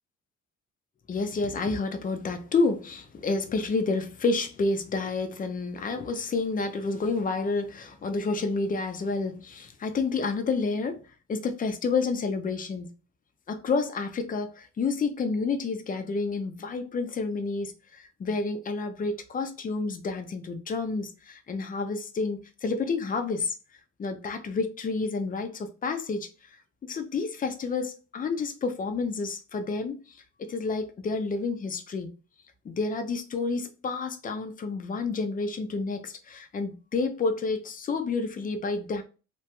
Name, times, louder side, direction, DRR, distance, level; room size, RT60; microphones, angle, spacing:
voice 1, 1.1-11.0 11.3-12.9 13.5-23.5 24.0-26.3 26.8-30.2 30.5-32.1 32.6-39.0, left 4 dB, 30° left, 0.5 m, -29 dB
2.9 x 2.2 x 2.8 m
cardioid pair, 125°, 30 cm